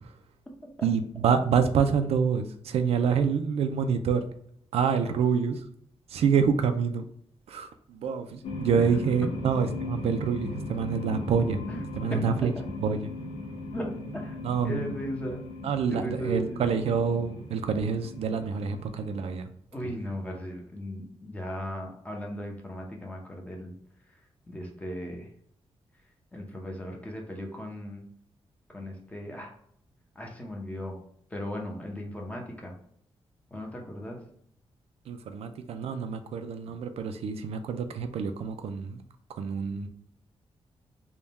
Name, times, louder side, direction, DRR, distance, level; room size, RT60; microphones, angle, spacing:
voice 1, 0.8-4.2 4.7-5.6 6.1-7.0 7.5-11.7 12.0-12.5 12.8-13.0 14.4-14.9 15.6-19.5 35.1-39.0 39.4-39.9, right 6 dB, 75° right, 8 dB, 0.4 m, -27 dB
sound 1, 8.4-19.4, left 2 dB, 80° left, 0.7 m, -38 dB
voice 2, 13.7-14.4 14.6-15.5 15.9-16.7 19.7-23.8 24.1-24.2 24.5-25.3 26.3-28.1 28.7-29.5 30.1-31.0 31.3-32.8 33.5-34.2 39.7-39.9, equal, 15° left, 1 dB, 0.7 m, -37 dB
3.5 x 2.2 x 4.0 m, 0.66 s
wide cardioid pair, 160°, 10 cm